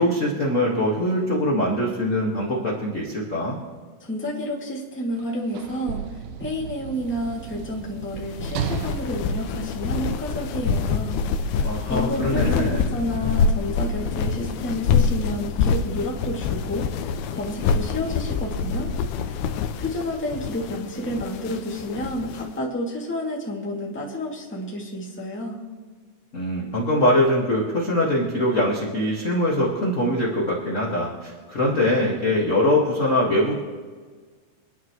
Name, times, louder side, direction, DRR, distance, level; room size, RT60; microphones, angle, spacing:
voice 1, 0.0-3.6 11.6-12.8 26.3-33.6, left 1 dB, 40° left, -4 dB, 1.0 m, -22 dB
voice 2, 4.0-6.0 6.4-18.9 19.2-19.5 19.8-25.6, left 1 dB, 5° left, -4 dB, 1.4 m, -30 dB
Sliding door / Slam, 5.1-10.5 11.4-11.5, right 8 dB, 75° right, 2.3 m, -35 dB
sound 1, 8.2-22.4, left 5 dB, 80° left, 2.6 m, -26 dB
26.5 x 11.0 x 3.1 m, 1.5 s
omnidirectional pair, 4.5 m